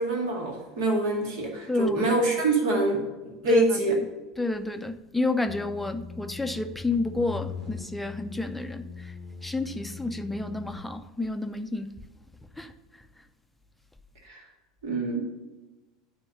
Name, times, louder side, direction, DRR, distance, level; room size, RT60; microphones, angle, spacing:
voice 1, 0.0-4.0 14.2-14.5 14.8-15.2, right 2 dB, 60° right, 2.1 m, -25 dB
voice 2, 1.7-2.1 3.5-3.7 4.4-9.1 9.4-11.9 12.6-12.7, left 2 dB, 5° left, 0.6 m, -30 dB
sound 1, 5.5-10.9, left 6 dB, 35° right, 2.5 m, -40 dB
9.7 x 3.6 x 6.7 m
figure-of-eight pair, 75°, 2 cm